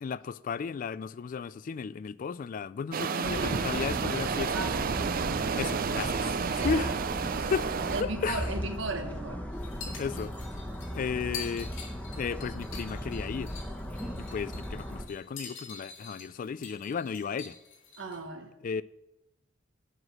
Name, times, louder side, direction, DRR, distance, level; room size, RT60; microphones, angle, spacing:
voice 1, 0.0-4.7 5.6-6.9 7.4-7.7 8.0-8.5 9.9-10.3 10.9-11.7 12.2-13.6 14.2-17.6 18.6-18.8, left 6 dB, 45° left, 0.3 m, -34 dB
sound 1, 2.9-8.0, right 6 dB, 45° right, 0.4 m, -31 dB
sound 2, 3.2-15.0, equal, 10° left, 1.0 m, -37 dB
voice 2, 4.5-4.9 6.6-6.9 7.9-9.4 9.8-9.9 18.0-18.5, right 3 dB, 80° right, 1.3 m, -36 dB
sound 3, 9.5-18.2, left 6 dB, 85° left, 2.4 m, -46 dB
7.9 x 5.8 x 7.5 m
head